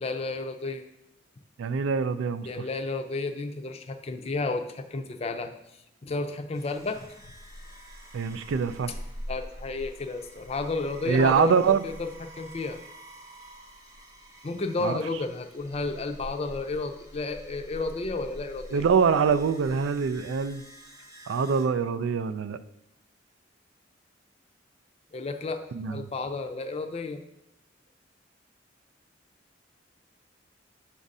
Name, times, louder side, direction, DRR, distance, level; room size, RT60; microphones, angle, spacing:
voice 1, 0.0-0.8 2.4-5.6 6.0-7.1 8.9-9.0 9.3-12.8 14.4-18.9 25.1-27.2, left 3 dB, 35° left, 6 dB, 0.4 m, -32 dB
voice 2, 1.6-2.5 8.1-8.9 11.1-11.8 14.8-15.0 18.7-20.6 21.3-22.6 25.7-26.1, right 6 dB, 85° right, 13 dB, 0.3 m, -24 dB
sound 1, 6.5-21.7, equal, 20° right, 0.7 m, -46 dB
7.0 x 2.5 x 5.3 m, 0.82 s
head